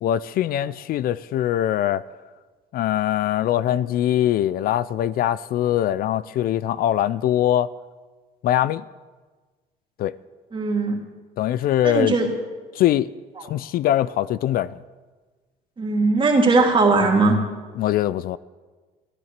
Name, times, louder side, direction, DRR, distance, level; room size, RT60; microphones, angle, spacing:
voice 1, 0.0-2.0 2.7-7.7 8.4-8.8 10.0-10.1 11.4-12.2 12.7-13.1 13.4-14.8 17.8-18.4, left 12 dB, 60° left, 0.4 m, -22 dB
voice 2, 10.5-11.0 11.8-12.3 15.8-17.4, right 3 dB, 30° right, 2.4 m, -19 dB
14.0 x 11.0 x 6.6 m
cardioid pair, 110°, 17 cm